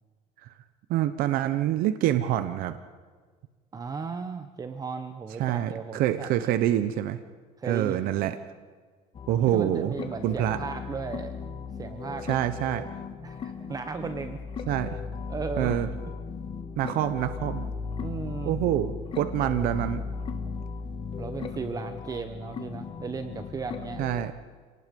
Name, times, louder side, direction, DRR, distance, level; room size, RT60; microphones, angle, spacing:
voice 1, 0.9-2.8 5.4-7.2 7.6-8.4 9.3-9.9 10.2-10.6 12.2-12.9 14.7-15.0 15.6-15.9 16.8-17.7 18.4-20.0 24.0-24.3, right 12 dB, 60° right, 10 dB, 1.1 m, -26 dB
voice 2, 3.7-6.5 7.6-8.3 9.5-11.3 11.8-12.3 13.2-14.4 15.3-15.7 18.0-18.6 21.2-24.0, right 5 dB, 20° right, 9 dB, 1.0 m, -36 dB
sound 1, 9.1-24.3, left 5 dB, 30° left, 1.7 m, -36 dB
27.5 x 19.0 x 5.4 m, 1.5 s
cardioid pair, 145°, 17 cm